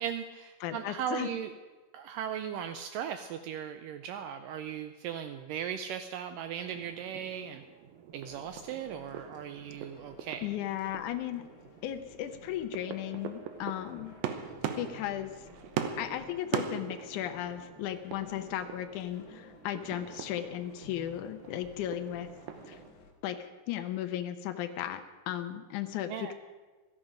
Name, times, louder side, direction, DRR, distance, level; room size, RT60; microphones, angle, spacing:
voice 1, 0.0-1.5 1.9-7.6 8.1-10.5 26.1-26.3, right 9 dB, 90° right, 8 dB, 1.9 m, -37 dB
voice 2, 0.6-1.3 10.4-11.4 11.8-14.1 14.8-15.5 16.0-22.3 22.7-22.8 23.2-25.0 25.3-26.3, left 12 dB, 85° left, 8 dB, 1.7 m, -36 dB
sound 1, 6.7-22.9, right 8 dB, 75° right, 2.6 m, -42 dB
sound 2, 8.1-23.1, left 4 dB, 55° left, 2.6 m, -55 dB
16.0 x 13.0 x 5.1 m, 1.3 s
omnidirectional pair, 4.5 m